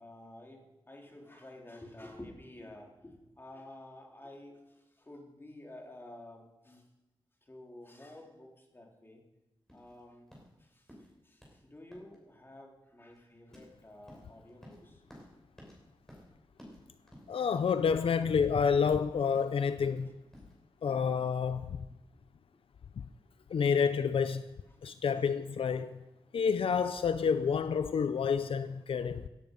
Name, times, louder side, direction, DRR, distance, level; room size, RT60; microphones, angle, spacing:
voice 1, 0.0-6.9 7.4-9.2 9.7-10.3 10.6-11.0 11.2-15.0 17.5-17.7 20.0-20.1, left 1 dB, 25° left, 3.5 m, -51 dB
sound 1, 9.7-21.1, equal, 5° left, 6.0 m, -56 dB
voice 2, 17.3-20.1 20.8-21.8 23.0-23.1 23.5-24.5 24.8-26.0 26.3-29.3, left 6 dB, 80° left, 0.6 m, -29 dB
17.0 x 13.5 x 5.4 m
wide cardioid pair, 85°, 9 cm